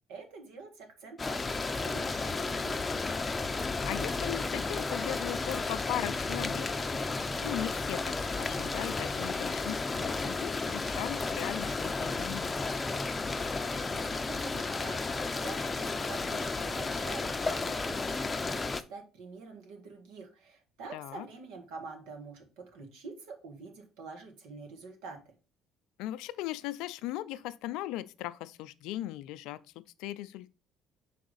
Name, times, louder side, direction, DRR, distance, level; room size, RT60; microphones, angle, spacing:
voice 1, 0.1-2.9 13.7-25.2, right 4 dB, 80° right, 1.6 m, -47 dB
sound 1, 1.2-18.8, left 3 dB, 25° left, 0.6 m, -33 dB
voice 2, 3.8-6.7 7.4-12.5 20.9-21.3 26.0-30.5, left 14 dB, 75° left, 0.4 m, -38 dB
5.9 x 4.7 x 4.0 m
supercardioid pair, 70°, 0 cm